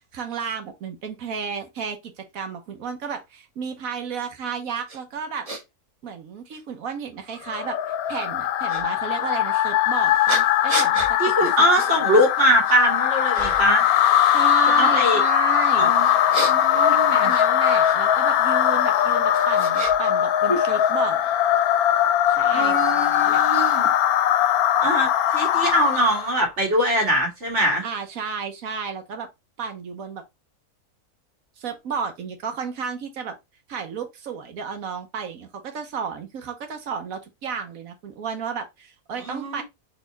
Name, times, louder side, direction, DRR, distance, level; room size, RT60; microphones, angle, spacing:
voice 1, 0.1-5.5 6.0-12.0 14.3-16.2 16.8-21.2 22.3-23.4 27.8-29.3 29.6-30.2 31.6-33.4 33.7-39.6, right 6 dB, 70° right, 1.3 m, -32 dB
sound 1, 4.9-5.0 5.5-5.6 6.5-6.6 8.7-8.8 10.3-11.1 11.7-11.9 12.4-12.9 13.3-13.8 16.0-18.0 18.9-20.2 20.5-21.3, right 2 dB, 30° right, 0.8 m, -31 dB
sound 2, 7.5-26.4, left 11 dB, 75° left, 1.0 m, -20 dB
voice 2, 11.2-13.9 14.8-15.2 15.8-16.2 16.5-17.3 22.5-23.9 24.8-27.8 39.2-39.6, equal, 50° right, 2.2 m, -22 dB
4.1 x 3.1 x 3.9 m
omnidirectional pair, 1.6 m